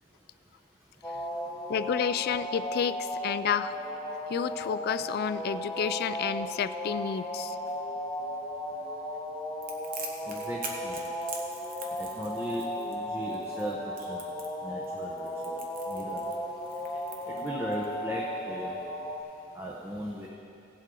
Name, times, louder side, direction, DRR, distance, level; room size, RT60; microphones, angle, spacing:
sound 1, 1.0-19.2, left 1 dB, 10° left, 1.0 m, -35 dB
voice 1, 1.7-3.8 4.3-7.6, left 7 dB, 50° left, 13 dB, 0.3 m, -30 dB
Crackle, 9.6-17.9, right 4 dB, 45° right, 1.2 m, -43 dB
voice 2, 10.2-11.0 12.0-14.2 14.6-15.6 15.9-16.2 17.3-18.8 19.5-20.3, equal, 10° right, -3 dB, 0.9 m, -37 dB
17.5 x 8.1 x 3.8 m, 2.7 s
head